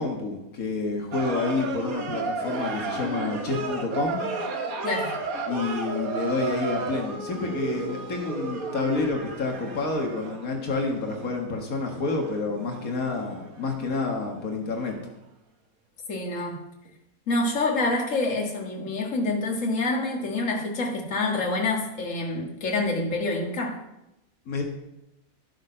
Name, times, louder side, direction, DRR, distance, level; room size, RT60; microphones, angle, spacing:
voice 1, 0.0-4.3 5.5-15.0 24.5-24.6, left 3 dB, 85° left, 2 dB, 2.0 m, -29 dB
sound 1, 1.1-14.5 14.8-14.9, right 3 dB, 85° right, 1.7 m, -33 dB
voice 2, 4.8-5.2 16.1-16.6 17.3-23.8, left 2 dB, 65° left, 1 dB, 2.1 m, -27 dB
12.5 x 8.1 x 5.6 m, 0.89 s
omnidirectional pair, 1.4 m